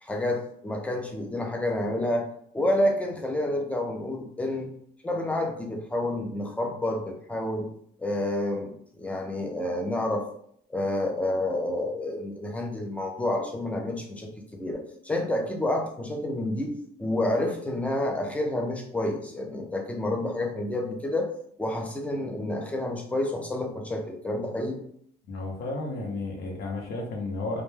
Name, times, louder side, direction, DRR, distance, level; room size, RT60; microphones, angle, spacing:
voice 1, 0.0-2.3 2.5-4.7 5.0-7.7 8.0-8.7 9.0-10.3 10.7-16.7 17.0-21.3 21.6-24.8, left 1 dB, 10° left, 2 dB, 0.4 m, -29 dB
voice 2, 25.3-27.6, left 2 dB, 75° left, 1 dB, 0.7 m, -32 dB
2.1 x 2.1 x 3.2 m, 0.68 s
cardioid pair, 110°, 17 cm